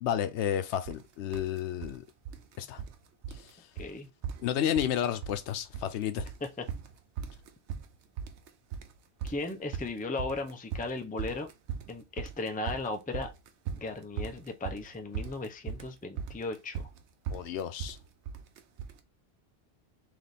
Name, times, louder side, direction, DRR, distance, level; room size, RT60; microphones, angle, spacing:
voice 1, 0.0-2.0 2.6-2.8 4.4-6.3 17.3-18.0, left 10 dB, 85° left, 0.9 m, -31 dB
sound 1, 0.9-1.0 1.3-2.0 2.3-3.0 3.2-3.5 3.8-3.9 4.2-5.0 5.2-5.9 6.2-19.0, right 7 dB, 90° right, 0.9 m, -39 dB
voice 2, 3.8-4.1 6.4-6.6 9.2-11.5 11.9-13.3 13.8-16.9, left 3 dB, 10° left, 0.4 m, -36 dB
3.4 x 3.0 x 4.0 m
omnidirectional pair, 1.1 m